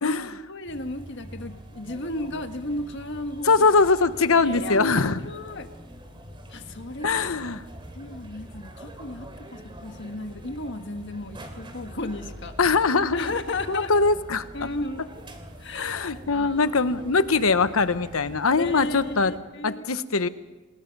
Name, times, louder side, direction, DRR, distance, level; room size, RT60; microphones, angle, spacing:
voice 1, 0.0-3.7 4.4-5.7 6.5-7.2 7.9-12.6 13.1-14.1 14.5-15.1 15.6-16.7 18.6-19.8, left 2 dB, 55° left, 7 dB, 1.6 m, -34 dB
sound 1, 0.6-19.4, equal, 25° right, 3.0 m, -44 dB
voice 2, 3.4-5.2 7.0-7.6 12.6-13.3 13.7-14.5 15.7-19.3 19.6-20.3, left 4 dB, 80° left, 12 dB, 1.0 m, -22 dB
27.5 x 20.5 x 5.4 m, 1.2 s
head